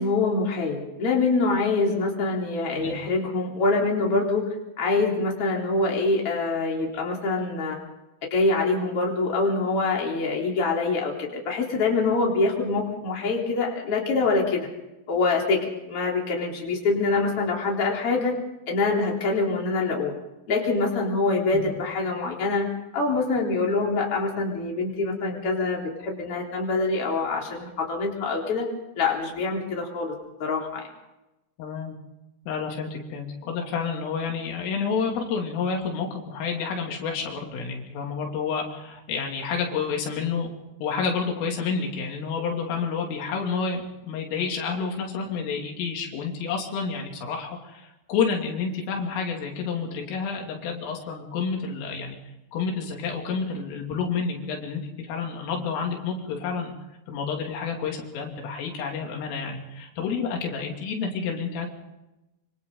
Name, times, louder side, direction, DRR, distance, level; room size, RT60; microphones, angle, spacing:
voice 1, 0.0-4.5 4.8-7.8 8.3-14.7 15.1-18.4 18.7-20.1 20.5-28.7 28.9-30.1 30.4-30.9, left 3 dB, 30° left, -1 dB, 4.1 m, -25 dB
voice 2, 31.6-32.0 32.5-40.5 40.8-52.2 52.5-56.8 57.1-61.7, left 5 dB, 85° left, 1 dB, 5.4 m, -29 dB
26.5 x 25.5 x 3.9 m, 0.95 s
omnidirectional pair, 5.6 m